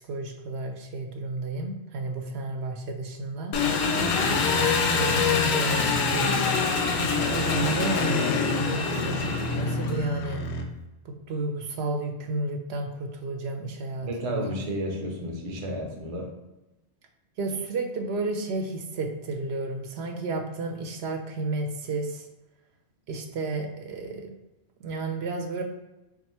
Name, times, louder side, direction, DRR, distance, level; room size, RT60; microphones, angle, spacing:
voice 1, 0.0-3.5 4.3-6.4 7.0-10.4 11.0-14.5 17.4-22.3 23.1-24.3 24.8-25.6, right 2 dB, 75° right, 4 dB, 0.8 m, -32 dB
Engine, 3.5-10.0, left 5 dB, 60° left, 0.5 m, -25 dB
voice 2, 3.9-4.4 14.0-16.3, equal, 40° right, 1 dB, 0.7 m, -32 dB
sound 1, 4.3-10.6, left 2 dB, 85° left, 0.9 m, -32 dB
3.5 x 2.5 x 4.2 m, 1.0 s
omnidirectional pair, 1.1 m